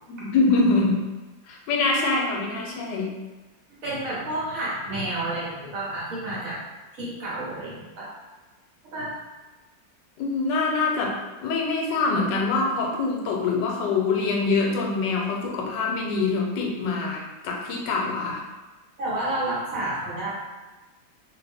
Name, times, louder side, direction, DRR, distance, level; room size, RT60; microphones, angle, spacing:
voice 1, 0.1-1.0 1.5-3.1 10.2-11.1 11.4-18.4, left 3 dB, 80° left, 0 dB, 1.2 m, -24 dB
voice 2, 3.8-6.6 6.9-8.1 8.9-9.1 19.0-20.3, right 1 dB, 55° right, -7 dB, 1.1 m, -30 dB
2.6 x 2.6 x 3.4 m, 1.2 s
omnidirectional pair, 2.0 m